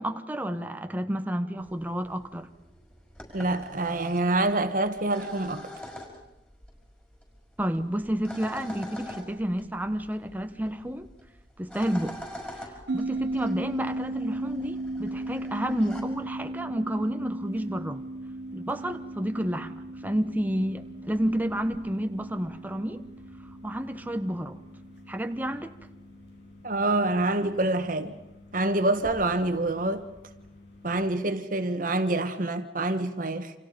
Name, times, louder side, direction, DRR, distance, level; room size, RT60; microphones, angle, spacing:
voice 1, 0.0-2.5 7.6-11.1 11.6-12.2 12.6-18.0 18.5-23.0 23.6-24.6 25.1-25.7, equal, 10° right, 1.1 m, -30 dB
sound 1, 1.6-16.0, equal, 10° left, 5.7 m, -45 dB
voice 2, 3.3-5.7 26.6-28.1 28.5-30.0 30.8-33.5, right 2 dB, 50° right, 1.6 m, -26 dB
sound 2, 12.9-25.6, right 2 dB, 90° right, 1.0 m, -36 dB
sound 3, 13.1-31.2, left 2 dB, 70° left, 7.7 m, -51 dB
29.0 x 27.5 x 5.3 m
head